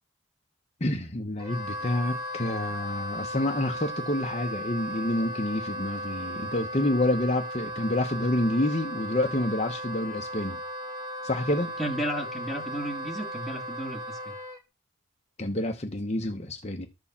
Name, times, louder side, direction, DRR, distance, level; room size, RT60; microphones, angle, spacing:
voice 1, 0.8-10.6 11.2-11.7 15.4-16.9, left 1 dB, 30° left, 1.0 m, -28 dB
Wind instrument woodwind instrument, 1.4-14.6, equal, 20° right, 1.9 m, -36 dB
voice 2, 11.8-14.3, right 1 dB, ahead, 1.9 m, -33 dB
12.5 x 4.7 x 7.2 m
head